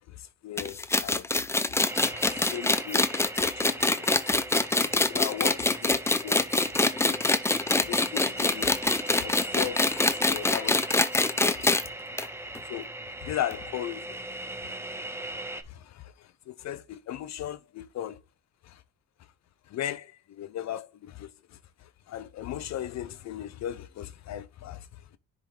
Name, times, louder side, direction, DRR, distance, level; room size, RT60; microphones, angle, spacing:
voice 1, 0.1-1.3 2.3-3.1 3.4-4.1 5.1-6.5 6.8-7.2 7.9-8.7 9.2-10.9 11.4-11.7 11.9-12.0 12.6-12.9 13.2-14.1 14.6-14.7 15.3-15.4 15.7-18.2 18.6-18.8 19.7-25.2, left 11 dB, 60° left, 0.5 m, -37 dB
sound 1, 0.6-11.9 12.2-12.3 12.5-12.6 13.5-13.6, left 2 dB, 10° left, 0.4 m, -24 dB
sound 2, 1.9-15.6, right 1 dB, 10° right, 0.9 m, -39 dB
10.0 x 3.6 x 3.2 m
cardioid pair, 90°, 30 cm